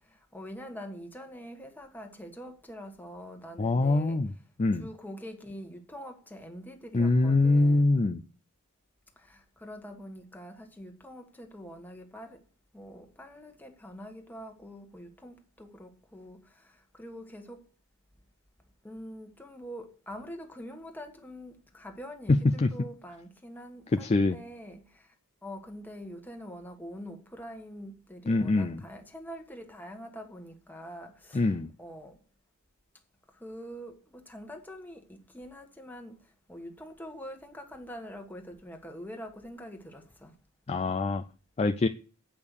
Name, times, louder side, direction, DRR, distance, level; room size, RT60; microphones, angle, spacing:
voice 1, 0.3-4.2 4.8-8.0 9.2-12.4 12.7-16.4 16.9-17.6 18.8-25.0 25.4-31.5 31.8-32.2 33.4-36.1 36.5-40.3, equal, 10° left, 1.4 m, -44 dB
voice 2, 3.6-4.3 4.6-4.9 6.9-8.2 22.3-22.7 24.0-24.4 28.3-28.8 31.3-31.7 40.7-41.2 41.6-41.9, left 2 dB, 30° left, 0.4 m, -24 dB
8.7 x 5.3 x 6.4 m
head